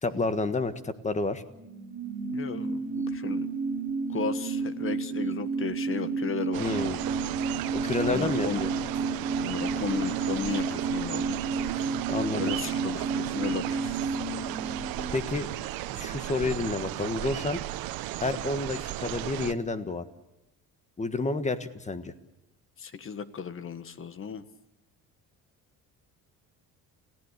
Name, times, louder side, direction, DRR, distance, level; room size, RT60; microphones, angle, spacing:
voice 1, 0.0-1.4 6.6-7.0 7.7-8.7 12.1-12.5 15.1-15.5 15.9-17.6 18.2-20.0 21.0-22.1, left 3 dB, 20° left, 12 dB, 1.5 m, -30 dB
sound 1, 1.5-16.5 16.8-16.9, right 4 dB, 20° right, 3.9 m, -32 dB
voice 2, 2.3-3.5 4.1-6.8 8.0-8.6 9.4-11.4 12.3-14.0 22.8-24.4, left 6 dB, 35° left, 13 dB, 1.6 m, -35 dB
sound 2, 6.5-19.5, right 15 dB, 85° right, 1.2 m, -35 dB
29.0 x 16.0 x 8.4 m, 1.0 s
cardioid pair, 125°, 35 cm